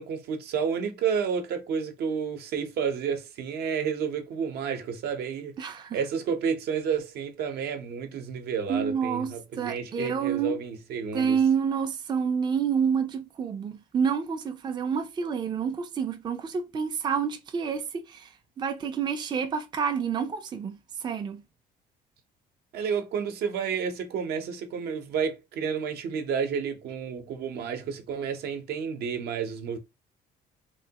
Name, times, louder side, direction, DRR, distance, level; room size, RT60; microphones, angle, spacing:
voice 1, 0.0-5.5 5.9-11.4 22.7-29.8, right 6 dB, 70° right, 0.7 m, -30 dB
voice 2, 5.6-6.0 8.7-10.6 11.1-18.3 18.6-20.8 21.0-21.4, right 6 dB, 25° right, 0.4 m, -28 dB
3.1 x 2.2 x 2.8 m
cardioid pair, 110°, 17 cm